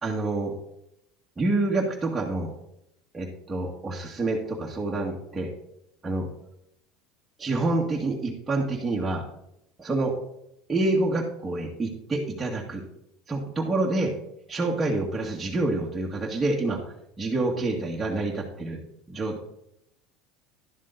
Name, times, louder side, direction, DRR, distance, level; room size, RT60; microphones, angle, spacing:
voice 1, 0.0-0.5 1.4-2.5 3.1-5.5 6.0-6.3 7.4-9.3 9.8-10.2 10.7-12.8 13.3-14.1 14.5-16.8 17.2-18.8 19.1-19.4, right 2 dB, 15° right, -3 dB, 1.8 m, -27 dB
11.5 x 7.4 x 4.0 m, 0.77 s
supercardioid pair, 110°, 0 cm